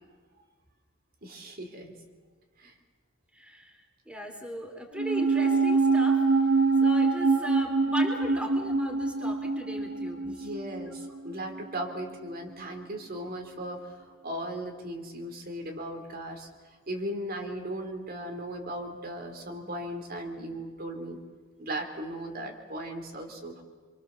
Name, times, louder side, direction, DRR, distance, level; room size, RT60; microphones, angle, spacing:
voice 1, 1.2-2.0 2.6-2.7 10.2-21.2 21.6-23.6, right 1 dB, 50° right, 4 dB, 3.4 m, -37 dB
voice 2, 3.3-3.8 4.1-6.2 6.8-10.5, equal, 5° right, 4 dB, 3.1 m, -38 dB
sound 1, 5.0-11.5 11.8-11.9, right 3 dB, 80° right, 2.7 m, -25 dB
27.0 x 24.0 x 7.0 m, 1.5 s
head